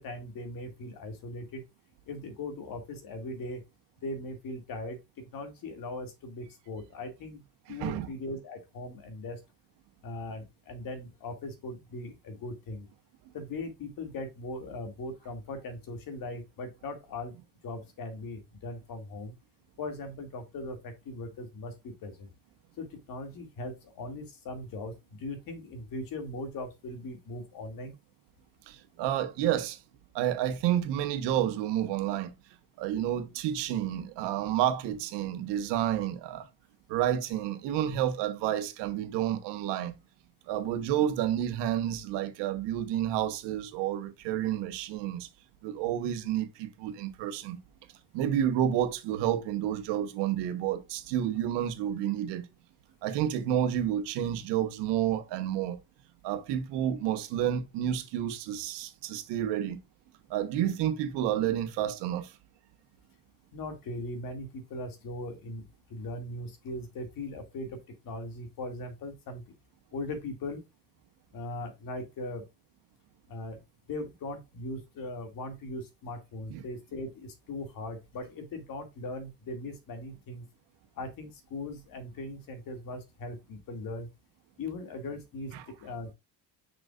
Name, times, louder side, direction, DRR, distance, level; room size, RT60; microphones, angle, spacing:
voice 1, 0.0-1.6 2.1-3.6 4.0-7.4 7.7-9.4 10.0-12.9 13.3-17.3 17.6-19.3 19.8-22.3 22.8-27.9 63.5-65.6 65.9-67.8 68.0-69.4 69.9-70.6 71.3-72.4 73.3-73.6 73.9-80.5 80.9-84.1 84.6-85.5 85.8-86.1, left 2 dB, 55° left, 2.4 m, -39 dB
voice 2, 7.7-8.1 28.7-29.8 30.1-32.3 32.8-36.5 36.9-40.0 40.5-45.3 45.6-47.6 48.1-52.5 53.0-55.8 56.2-59.8 60.3-62.4 76.5-76.6 85.5-85.6, right 11 dB, 90° right, 1.3 m, -30 dB
6.5 x 5.9 x 2.4 m
cardioid pair, 135°, 41 cm